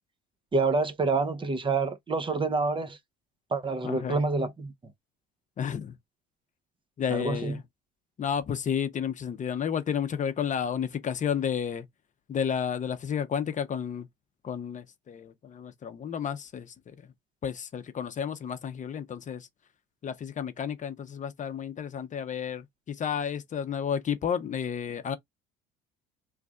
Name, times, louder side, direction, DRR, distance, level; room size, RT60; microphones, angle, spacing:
voice 1, 0.5-3.0 3.5-4.7 7.1-7.6, right 3 dB, 25° right, 0.7 m, -27 dB
voice 2, 3.8-4.2 5.6-6.0 7.0-7.6 8.2-11.9 12.3-14.1 14.4-17.1 17.4-19.5 20.0-25.2, left 8 dB, 35° left, 0.7 m, -31 dB
3.2 x 2.5 x 3.4 m
supercardioid pair, 95°, 21 cm